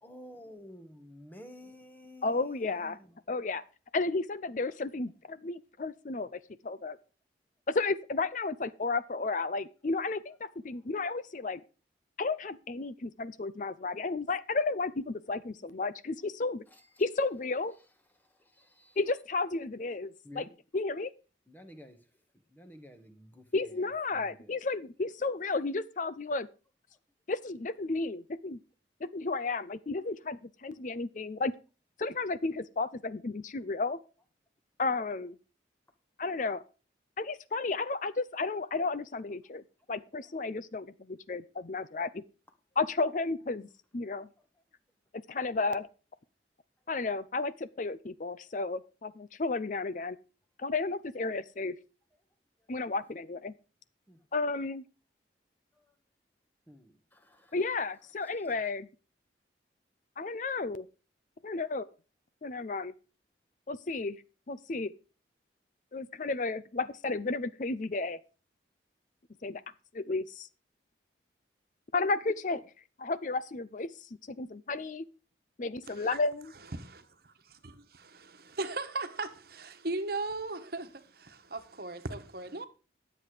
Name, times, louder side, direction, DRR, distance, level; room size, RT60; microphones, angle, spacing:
voice 1, 0.0-3.2 16.7-19.2 20.2-20.5 21.5-22.0 22.5-24.6 54.1-54.2 56.7-58.7, left 1 dB, 10° left, 1.4 m, -53 dB
voice 2, 2.2-3.0 3.3-3.6 3.9-7.0 7.7-11.6 12.2-16.6 17.0-17.7 19.0-21.1 23.5-26.5 27.3-28.6 29.0-31.5 32.0-34.0 34.8-35.4 36.2-36.6 37.2-39.6 39.9-42.2 42.8-44.3 45.1-45.9 46.9-50.2 50.6-51.8 52.7-53.5 54.3-54.8 57.5-58.9 60.2-60.9 61.4-61.9 62.4-62.9 63.7-64.9 65.9-68.2 69.4-69.6 69.9-70.5 71.9-72.7 73.0-75.1 75.6-76.5, left 3 dB, 40° left, 0.5 m, -33 dB
voice 3, 75.9-76.2 76.7-82.7, right 3 dB, 55° right, 1.3 m, -38 dB
12.0 x 7.9 x 4.9 m
head